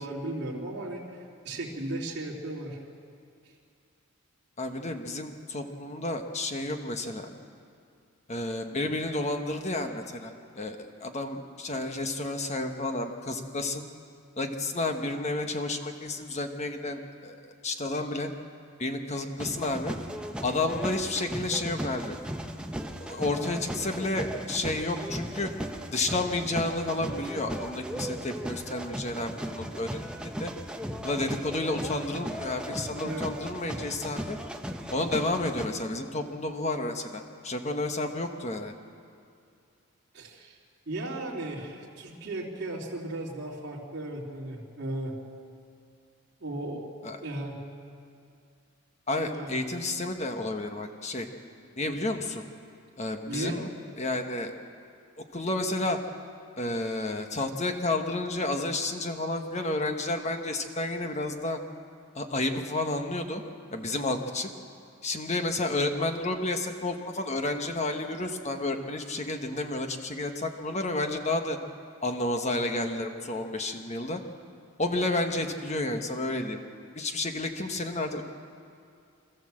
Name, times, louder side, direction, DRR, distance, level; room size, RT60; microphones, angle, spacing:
voice 1, 0.0-2.8 33.0-33.3 40.1-40.6 40.9-45.1 46.4-46.9 47.2-47.6 49.2-49.6 53.3-53.6, right 1 dB, 50° right, -7 dB, 3.3 m, -36 dB
voice 2, 4.6-7.3 8.3-13.8 14.4-18.3 18.8-20.0 20.4-22.2 23.0-25.5 25.9-30.5 31.0-34.4 34.9-38.7 47.0-47.2 49.1-51.3 51.8-52.4 53.0-53.7 54.0-54.5 55.3-56.0 56.6-61.6 62.1-63.4 63.7-64.5 65.0-71.6 72.0-74.2 74.8-76.6 76.9-78.2, left 2 dB, 30° left, 5 dB, 1.3 m, -31 dB
sound 1, 19.4-35.7, right 1 dB, 5° right, 0.8 m, -37 dB
26.0 x 14.0 x 7.7 m, 2.5 s
head